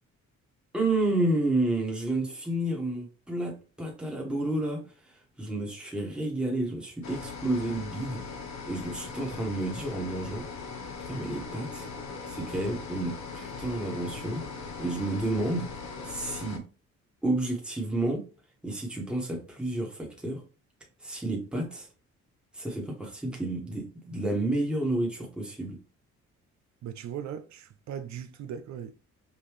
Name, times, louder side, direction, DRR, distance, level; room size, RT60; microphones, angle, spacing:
voice 1, 0.7-8.3 8.6-10.5 11.0-11.9 12.2-14.5 14.8-15.7 16.0-16.6 17.2-18.2 18.6-20.4 21.0-21.9 22.5-25.8, right 2 dB, 5° right, 1.4 m, -30 dB
sound 1, 7.0-16.6, left 5 dB, 65° left, 0.9 m, -40 dB
voice 2, 26.8-28.9, right 8 dB, 65° right, 0.5 m, -38 dB
5.4 x 2.6 x 3.2 m
cardioid pair, 90°, 30 cm